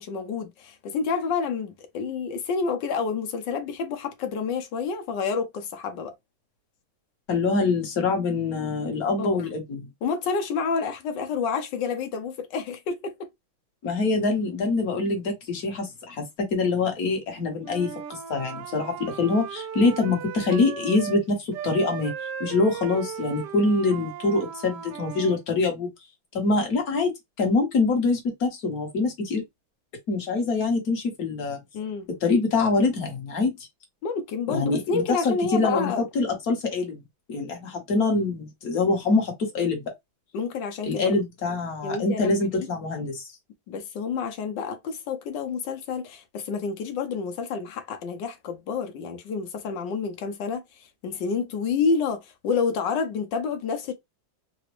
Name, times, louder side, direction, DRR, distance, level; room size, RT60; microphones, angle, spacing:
voice 1, 0.0-6.1 9.2-9.4 10.0-13.3 31.7-32.1 34.0-36.0 40.3-41.1 41.8-42.3 43.7-50.6 51.0-53.9, left 5 dB, 70° left, 1.3 m, -29 dB
voice 2, 7.3-9.9 13.8-16.2 16.5-17.9 18.3-22.1 22.4-25.9 26.3-27.1 27.4-29.4 30.1-31.6 32.2-33.5 34.5-37.0 37.3-39.9 40.8-43.3, left 3 dB, 50° left, 1.4 m, -24 dB
Wind instrument woodwind instrument, 17.6-21.2 21.5-25.4, right 8 dB, 70° right, 1.1 m, -36 dB
3.9 x 2.0 x 3.0 m
omnidirectional pair, 2.2 m